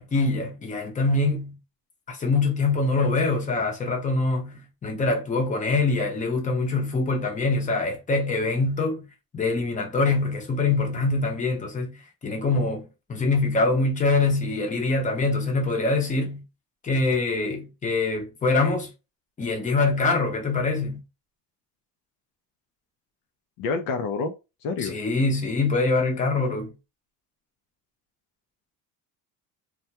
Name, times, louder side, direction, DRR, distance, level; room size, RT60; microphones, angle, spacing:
voice 1, 0.0-1.6 2.1-9.1 9.3-16.4 16.8-18.9 19.4-21.0 24.8-26.7, left 3 dB, 20° left, 0.8 m, -24 dB
voice 2, 23.6-24.3 24.6-24.9, left 4 dB, 65° left, 0.6 m, -27 dB
2.3 x 2.1 x 2.8 m
cardioid pair, 120°, 39 cm